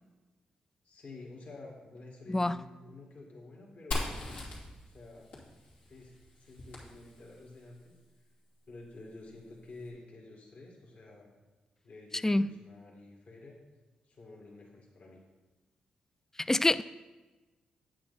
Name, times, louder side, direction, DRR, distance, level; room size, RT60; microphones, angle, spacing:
voice 1, 0.8-4.2 4.9-5.3 5.9-7.9 8.7-11.3 11.8-13.6 14.0-15.2, left 2 dB, 60° left, -1 dB, 2.0 m, -50 dB
Fire, 3.9-7.6, left 2 dB, 90° left, 2.8 m, -40 dB
voice 2, 16.5-16.8, left 2 dB, 15° left, 16 dB, 0.3 m, -25 dB
8.7 x 8.4 x 4.1 m, 1.2 s
supercardioid pair, 55°, 3 cm